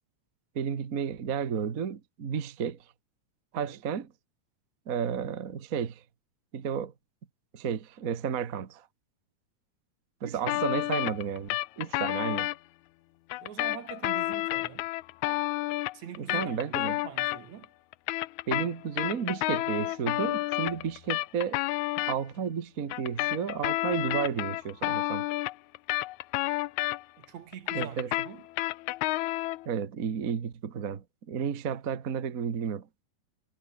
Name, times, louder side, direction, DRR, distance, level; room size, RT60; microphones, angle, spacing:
voice 1, 0.5-2.8 3.5-4.1 4.9-6.0 6.5-6.9 7.5-8.8 10.2-11.5 11.8-12.5 16.2-17.0 18.5-21.6 22.0-25.2 27.7-28.1 29.6-32.9, right 7 dB, 40° right, 1.5 m, -32 dB
voice 2, 10.2-10.9 13.4-14.9 15.9-17.7 27.2-28.0 28.2-28.4, right 10 dB, 70° right, 3.0 m, -44 dB
sound 1, 10.5-12.6 13.3-17.6 17.9-22.2 22.9-27.2 27.5-29.7, left 18 dB, 85° left, 2.0 m, -30 dB
omnidirectional pair, 3.3 m